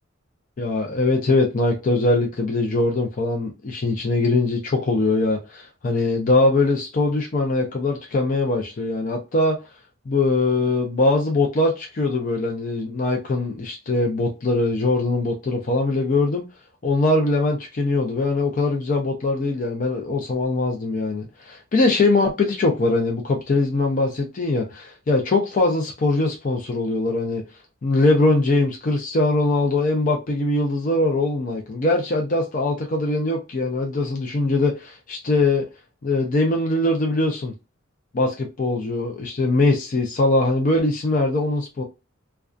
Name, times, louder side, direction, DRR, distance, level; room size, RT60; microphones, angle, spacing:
voice 1, 0.6-9.6 10.1-16.4 16.8-27.4 27.8-35.6 36.0-37.5 38.1-41.8, left 2 dB, 40° left, 0.5 m, -22 dB
2.4 x 2.2 x 2.4 m
head